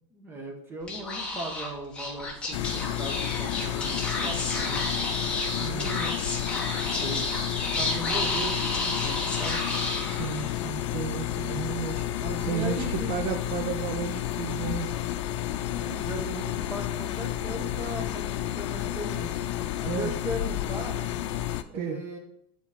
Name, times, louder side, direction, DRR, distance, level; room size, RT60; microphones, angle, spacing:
voice 1, 0.1-4.8 5.6-6.2 6.7-7.3 7.6-9.6 12.1-13.1 15.8-19.4 19.8-21.0 21.7-22.2, right 1 dB, 15° right, 1 dB, 1.4 m, -38 dB
Speech / Whispering, 0.8-10.6, left 2 dB, 5° left, 1.3 m, -31 dB
sound 1, 2.5-21.6, left 12 dB, 90° left, 0.5 m, -31 dB
voice 2, 5.6-5.9 10.1-12.0 12.4-14.9 19.9-20.1 21.7-22.0, right 7 dB, 50° right, 4 dB, 0.8 m, -33 dB
7.9 x 4.1 x 5.2 m, 0.70 s
supercardioid pair, 160°, 15 cm